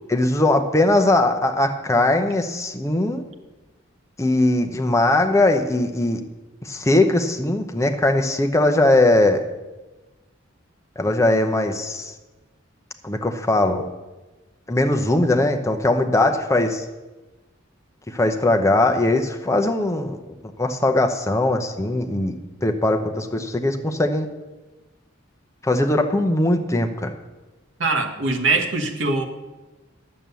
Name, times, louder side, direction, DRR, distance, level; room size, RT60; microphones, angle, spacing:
voice 1, 0.1-3.2 4.2-6.2 6.6-9.4 11.0-12.1 13.0-13.8 14.7-16.8 18.1-20.2 20.6-22.3 22.6-24.3 25.6-27.1, left 2 dB, 15° left, 5 dB, 0.7 m, -20 dB
voice 2, 27.8-29.3, right 3 dB, 75° right, 3 dB, 1.3 m, -22 dB
11.0 x 7.6 x 6.9 m, 1.2 s
head